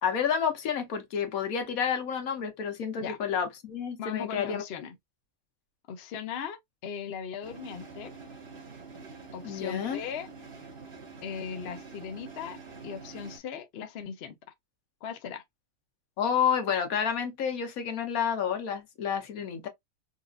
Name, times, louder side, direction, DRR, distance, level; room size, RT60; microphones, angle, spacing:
voice 1, 0.0-4.6 9.4-10.0 16.2-19.7, left 7 dB, 75° left, 1.3 m, -29 dB
voice 2, 4.0-5.0 5.9-8.1 9.3-10.3 11.2-12.6 12.8-14.4 15.0-15.4, left 7 dB, 60° left, 0.7 m, -38 dB
sound 1, 7.4-13.4, right 4 dB, 40° right, 1.3 m, -46 dB
4.0 x 2.4 x 2.4 m
omnidirectional pair, 1.5 m